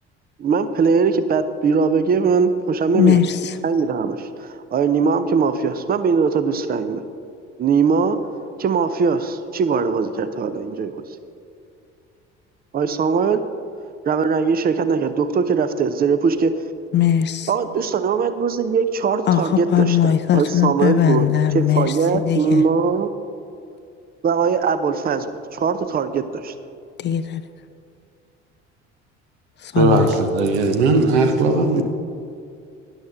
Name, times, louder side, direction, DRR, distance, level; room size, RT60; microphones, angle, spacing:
voice 1, 0.4-3.2 3.6-7.0 7.6-8.2 8.6-11.0 12.7-13.4 14.1-16.6 17.5-21.3 21.5-23.1 24.2-25.3 25.5-26.5, right 5 dB, 25° right, 12 dB, 0.7 m, -20 dB
voice 2, 2.9-3.6 16.9-17.5 19.3-22.6 27.0-27.4 29.6-30.1, left 10 dB, 30° left, 12 dB, 0.5 m, -19 dB
voice 3, 29.8-31.8, right 3 dB, 70° right, 5 dB, 1.1 m, -18 dB
12.5 x 10.5 x 3.6 m, 2.4 s
figure-of-eight pair, 55°, 35 cm